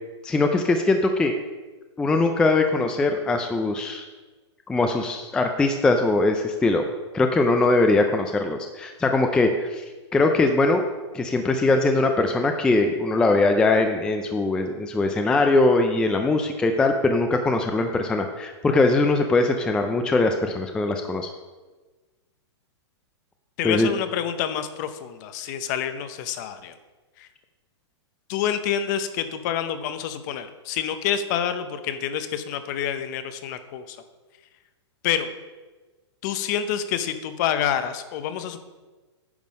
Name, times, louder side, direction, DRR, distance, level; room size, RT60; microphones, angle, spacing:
voice 1, 0.2-1.3 2.0-4.1 4.7-6.8 7.1-9.8 10.1-10.8 11.1-21.3 23.6-23.9, left 2 dB, 5° left, 5 dB, 0.3 m, -21 dB
voice 2, 23.6-26.7 27.2-27.3 28.3-34.0 35.0-35.3 36.2-38.6, left 9 dB, 40° left, 11 dB, 0.7 m, -27 dB
9.5 x 5.4 x 5.2 m, 1.3 s
hypercardioid pair, 145°, 15 cm